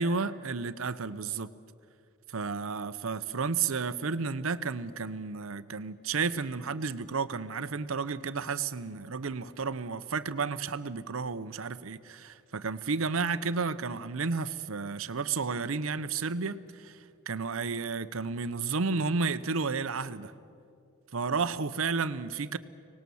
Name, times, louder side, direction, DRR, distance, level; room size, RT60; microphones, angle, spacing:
voice 1, 0.0-1.5 2.3-20.3 21.1-22.6, right 4 dB, 70° right, 0.7 m, -32 dB
24.0 x 19.0 x 7.0 m
head